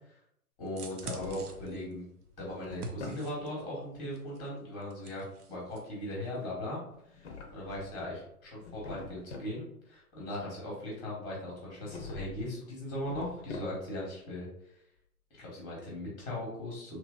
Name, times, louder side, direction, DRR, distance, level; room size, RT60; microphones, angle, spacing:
voice 1, 0.6-2.0 2.4-6.8 7.1-14.5 15.4-17.0, left 1 dB, 10° left, -4 dB, 0.9 m, -39 dB
sound 1, 0.7-3.6 4.1-5.9 6.1-6.3, right 2 dB, 85° right, 0.6 m, -45 dB
Drawer open or close, 0.8-1.8 2.2-3.3 6.9-8.1 8.5-9.6 11.8-12.5 12.8-14.1, left 3 dB, 50° left, 0.6 m, -45 dB
2.9 x 2.6 x 2.4 m, 0.74 s
figure-of-eight pair, 115°, 45 cm